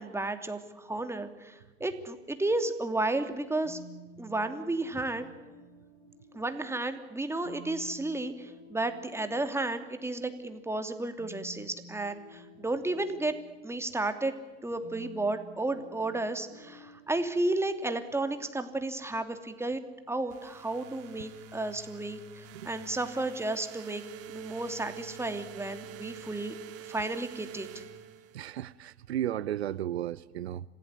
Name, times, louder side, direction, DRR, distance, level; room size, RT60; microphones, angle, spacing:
voice 1, 0.0-3.8 4.2-5.3 6.3-13.4 13.6-14.3 14.6-19.8 20.1-24.0 24.3-26.5 26.9-27.7, right 2 dB, 10° right, 2.9 m, -32 dB
sound 1, 3.6-19.2, equal, 80° left, 6.2 m, -53 dB
sound 2, 20.3-28.6, right 7 dB, 50° right, 3.0 m, -47 dB
voice 2, 28.3-30.6, right 11 dB, 80° right, 0.7 m, -34 dB
26.5 x 17.0 x 9.9 m
hypercardioid pair, 80°, 32 cm